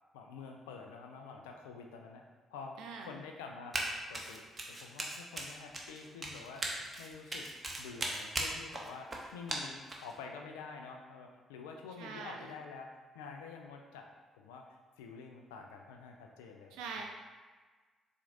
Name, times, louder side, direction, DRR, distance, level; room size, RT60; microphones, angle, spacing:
voice 1, 0.1-2.2 2.5-6.7 7.0-7.5 7.8-12.9 13.1-14.1 14.4-16.8, left 5 dB, 85° left, 2 dB, 0.3 m, -48 dB
voice 2, 2.8-3.2 12.0-12.5 16.7-17.0, right 5 dB, 75° right, 2 dB, 0.4 m, -43 dB
Run, 3.7-3.9 4.1-10.1, right 1 dB, 30° right, 0.7 m, -38 dB
4.3 x 2.5 x 2.6 m, 1.4 s
hypercardioid pair, 45°, 0 cm